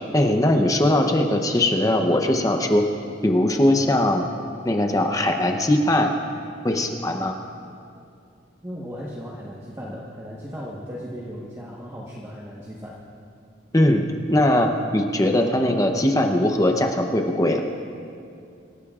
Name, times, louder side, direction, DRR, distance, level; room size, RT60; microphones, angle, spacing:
voice 1, 0.1-2.8 3.2-4.2 4.6-6.1 6.6-7.4 13.7-17.6, left 1 dB, 20° left, 4 dB, 0.7 m, -20 dB
voice 2, 8.6-12.9, equal, 15° right, -5 dB, 1.2 m, -36 dB
25.0 x 14.5 x 2.4 m, 2.5 s
head